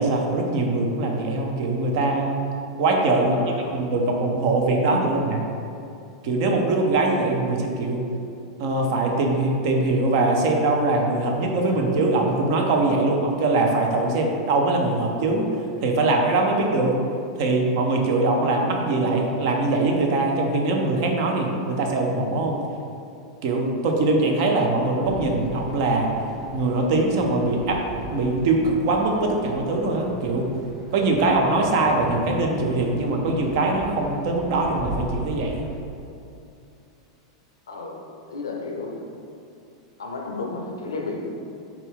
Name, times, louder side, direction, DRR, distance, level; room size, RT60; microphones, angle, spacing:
voice 1, 0.0-2.4 2.8-3.4 3.7-5.4 6.2-8.0 8.6-15.5 15.8-17.0 17.4-22.6 23.4-26.1 26.5-27.8 28.1-30.5 30.9-35.7, right 2 dB, 60° right, 2 dB, 0.5 m, -22 dB
voice 2, 3.2-3.8 37.7-38.0 38.3-39.0 40.0-41.3, left 3 dB, 85° left, 1 dB, 0.5 m, -33 dB
sound 1, 25.0-35.8, right 1 dB, ahead, 0.8 m, -37 dB
4.0 x 2.3 x 3.5 m, 2.6 s
hypercardioid pair, 100°, 2 cm